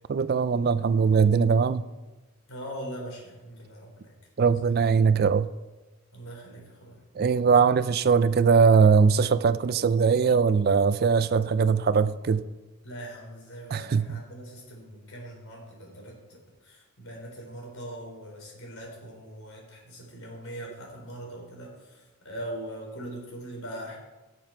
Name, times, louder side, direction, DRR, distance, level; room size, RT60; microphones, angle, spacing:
voice 1, 0.1-1.8 4.4-5.5 7.2-12.4 13.7-14.2, right 5 dB, 45° right, 14 dB, 0.4 m, -21 dB
voice 2, 2.5-4.1 4.5-4.6 6.1-7.0 12.8-24.0, right 1 dB, 65° left, -1 dB, 3.8 m, -41 dB
17.5 x 6.9 x 4.4 m, 1.1 s
head